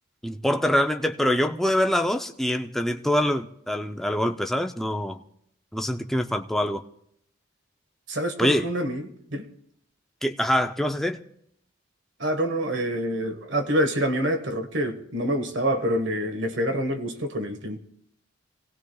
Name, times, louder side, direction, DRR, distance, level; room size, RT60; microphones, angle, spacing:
voice 1, 0.2-5.2 5.7-6.8 8.4-8.7 10.2-11.2, equal, ahead, 0.5 m, -24 dB
voice 2, 8.1-9.5 12.2-17.8, equal, 65° right, 1.5 m, -26 dB
25.5 x 17.5 x 2.3 m
head